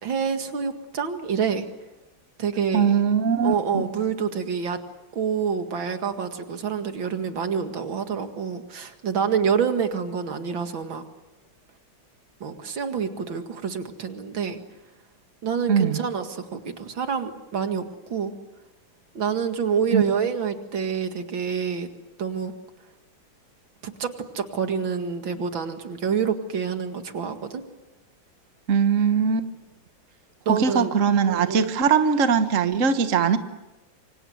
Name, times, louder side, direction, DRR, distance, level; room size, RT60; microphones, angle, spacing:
voice 1, 0.0-1.7 2.4-2.9 3.4-4.8 5.1-11.0 12.4-14.6 15.4-17.8 18.1-18.3 19.1-21.9 22.2-22.5 23.8-24.1 24.3-27.6 30.5-30.9 31.3-31.7, right 6 dB, 90° right, 7 dB, 2.7 m, -27 dB
voice 2, 2.7-3.9 15.7-16.0 19.9-20.0 28.7-29.5 30.5-33.4, right 6 dB, 45° right, 9 dB, 1.5 m, -21 dB
27.5 x 25.0 x 8.0 m, 1.0 s
omnidirectional pair, 2.1 m